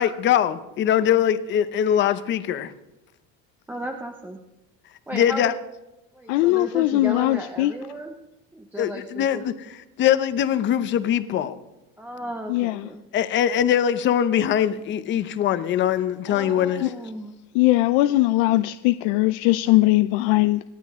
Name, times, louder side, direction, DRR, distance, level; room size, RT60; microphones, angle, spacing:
voice 1, 0.0-2.7 5.1-5.5 8.8-11.6 13.1-16.9, left 10 dB, 30° left, 0.7 m, -22 dB
voice 2, 3.7-4.4 5.1-5.6 6.1-8.2 8.5-9.4 12.0-13.0 16.3-17.3, right 1 dB, 5° right, 0.6 m, -35 dB
voice 3, 6.3-7.7 12.5-12.9 16.8-16.9 17.5-20.6, left 18 dB, 85° left, 0.6 m, -20 dB
27.5 x 10.5 x 3.6 m
cardioid pair, 180°, 36 cm